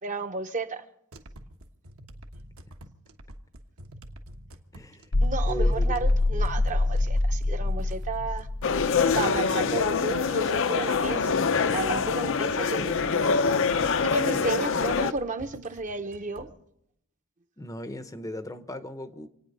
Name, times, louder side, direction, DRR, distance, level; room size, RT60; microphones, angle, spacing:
voice 1, 0.0-0.8 5.2-8.5 9.1-11.4 11.7-13.1 14.0-16.5, right 3 dB, 35° right, 0.9 m, -32 dB
sound 1, 1.1-16.5, right 1 dB, 65° right, 1.3 m, -47 dB
voice 2, 4.7-5.1 5.5-6.1 17.6-19.3, left 1 dB, 15° left, 0.7 m, -37 dB
sound 2, 5.1-9.1, left 2 dB, 80° left, 1.0 m, -25 dB
sound 3, 8.6-15.1, left 5 dB, 60° left, 0.7 m, -25 dB
27.5 x 9.3 x 5.4 m
head